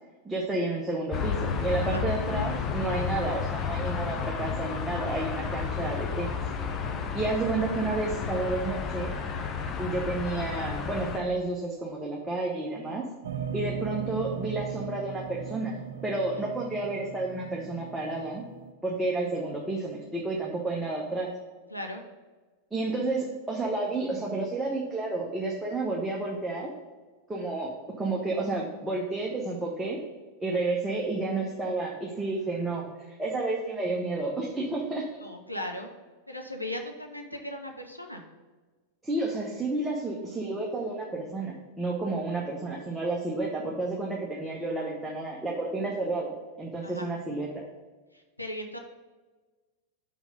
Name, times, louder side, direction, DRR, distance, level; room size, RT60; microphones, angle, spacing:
voice 1, 0.2-6.3 7.1-9.2 9.8-13.0 13.5-15.8 16.0-18.4 18.8-21.3 22.7-26.7 27.3-27.7 28.0-30.0 30.4-35.0 39.0-47.6, right 2 dB, 10° right, -3 dB, 0.9 m, -31 dB
sound 1, 1.1-11.2, left 6 dB, 30° left, 0.7 m, -32 dB
sound 2, 13.2-18.7, right 8 dB, 60° right, 0.6 m, -38 dB
voice 2, 21.7-22.0 35.2-35.9 36.3-38.2 42.7-42.9 46.8-47.1 48.4-48.8, left 1 dB, 90° left, 3 dB, 0.7 m, -37 dB
5.4 x 4.6 x 5.2 m, 1.3 s
figure-of-eight pair, 90°, 0 cm